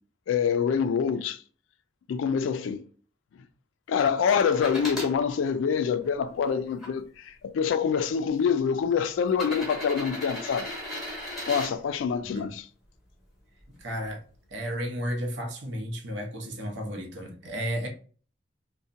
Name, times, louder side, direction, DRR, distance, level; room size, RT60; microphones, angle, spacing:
voice 1, 0.3-1.4 2.1-2.8 3.9-10.7 11.5-12.7, left 6 dB, 90° left, 0.3 m, -26 dB
sound 1, 4.5-5.1 5.9-6.9 7.9-8.0 9.3-11.7 13.6-13.7, left 1 dB, ahead, 0.8 m, -36 dB
voice 2, 13.7-14.2 14.5-17.9, equal, 75° right, 0.7 m, -33 dB
2.7 x 2.1 x 2.5 m
head